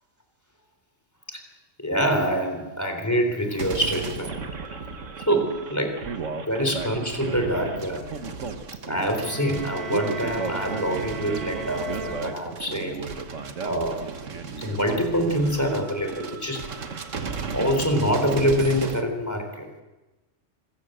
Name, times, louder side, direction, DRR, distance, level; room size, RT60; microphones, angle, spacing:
voice 1, 1.8-4.4 5.2-5.9 6.5-8.0 8.8-13.1 13.7-14.0 14.6-16.7 17.5-19.8, equal, 15° left, 4 dB, 3.7 m, -25 dB
sound 1, 3.6-19.0, right 5 dB, 75° right, 1.7 m, -34 dB
sound 2, 9.1-13.0, right 3 dB, 25° right, 1.4 m, -39 dB
25.5 x 15.0 x 7.9 m, 1.1 s
omnidirectional pair, 1.3 m